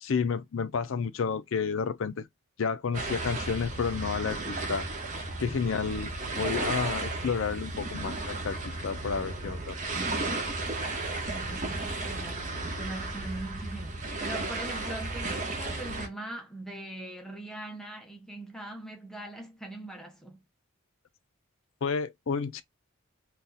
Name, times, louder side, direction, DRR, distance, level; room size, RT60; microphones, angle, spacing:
voice 1, 0.0-2.3 2.6-4.9 5.4-9.8 21.8-22.6, left 5 dB, 60° left, 0.4 m, -31 dB
sound 1, 2.9-16.1, right 2 dB, 35° right, 0.7 m, -34 dB
voice 2, 11.3-12.5 12.8-20.4, right 1 dB, ahead, 0.5 m, -41 dB
2.6 x 2.3 x 3.9 m
head